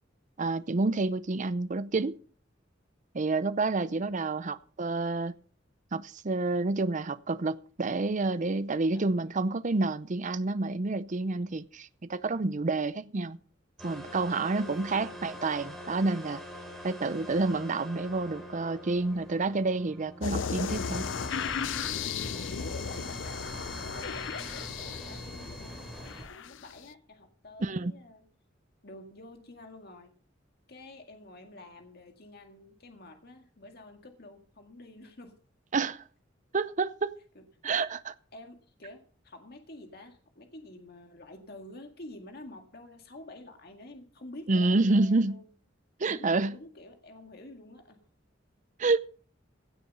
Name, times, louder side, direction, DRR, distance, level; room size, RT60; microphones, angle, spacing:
voice 1, 0.4-2.2 3.1-5.3 5.9-13.4 13.8-16.4 16.8-21.1 27.6-27.9 35.7-36.0 36.5-37.2 37.6-38.1 44.5-45.4 46.0-46.5 48.8-49.0, right 3 dB, 40° right, 0.6 m, -29 dB
voice 2, 3.8-4.4 8.8-9.1 11.3-11.5 14.5-15.3 22.2-25.2 25.5-28.3 28.8-30.1 30.7-35.3 37.4-37.8 38.3-45.5 46.1-48.0, left 1 dB, 55° left, 2.0 m, -49 dB
sound 1, 13.8-26.2, equal, ahead, 3.5 m, -43 dB
sound 2, 20.2-26.8, left 6 dB, 80° left, 0.5 m, -35 dB
16.5 x 7.8 x 5.4 m
head